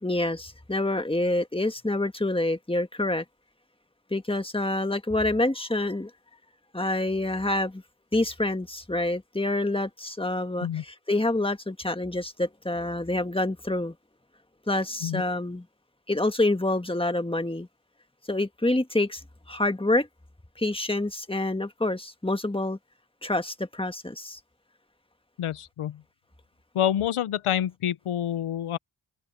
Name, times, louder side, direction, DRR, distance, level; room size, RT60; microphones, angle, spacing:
voice 1, 0.0-3.2 4.1-6.1 6.7-7.8 8.1-13.9 14.7-15.6 16.1-17.7 18.3-19.2 19.5-20.1 20.6-22.8 23.2-24.4, left 2 dB, 10° left, 1.5 m, -27 dB
voice 2, 25.4-26.0 26.7-28.8, left 10 dB, 90° left, 0.6 m, -27 dB
cardioid pair, 50°, 49 cm